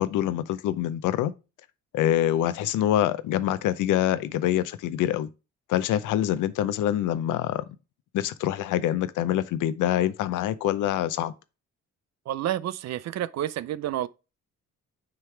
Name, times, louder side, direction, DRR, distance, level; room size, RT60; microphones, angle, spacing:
voice 1, 0.0-1.3 1.9-5.3 5.7-7.6 8.1-11.3, left 12 dB, 85° left, 0.6 m, -25 dB
voice 2, 12.3-14.1, right 12 dB, 60° right, 0.5 m, -29 dB
9.4 x 3.3 x 3.2 m
cardioid pair, 90°, 30 cm